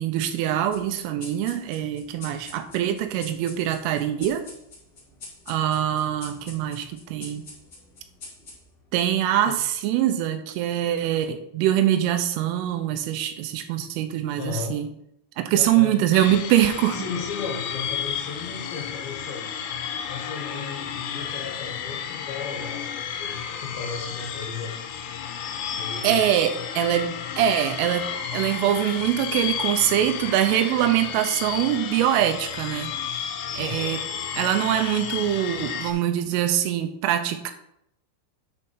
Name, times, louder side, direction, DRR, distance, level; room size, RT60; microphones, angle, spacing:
voice 1, 0.0-4.4 5.5-7.5 8.9-14.9 15.4-17.0 26.0-34.0 34.3-37.5, right 11 dB, 85° right, 8 dB, 3.2 m, -24 dB
sound 1, 0.7-9.6, left 3 dB, 45° left, 1.3 m, -46 dB
voice 2, 14.4-14.8 15.6-16.0 16.9-19.5 20.1-24.7 25.7-26.2 33.6-34.0, left 5 dB, 70° left, 1 dB, 3.3 m, -35 dB
sound 2, 16.1-35.9, left 8 dB, 90° left, 3.3 m, -32 dB
9.3 x 4.5 x 5.5 m, 0.78 s
omnidirectional pair, 5.9 m